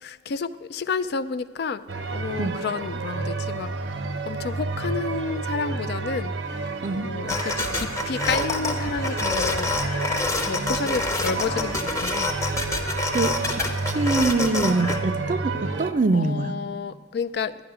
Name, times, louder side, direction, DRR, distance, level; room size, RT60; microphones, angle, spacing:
voice 1, 0.0-3.7 4.2-6.3 6.9-9.7 10.4-12.3 16.1-17.6, left 4 dB, 60° left, 14 dB, 0.4 m, -30 dB
sound 1, 1.9-15.9, right 3 dB, 90° right, 0.8 m, -30 dB
sound 2, 7.3-15.0, left 3 dB, 15° left, 0.9 m, -27 dB
voice 2, 13.1-16.6, right 3 dB, 45° right, 11 dB, 0.5 m, -24 dB
12.0 x 9.5 x 4.8 m, 1.5 s
head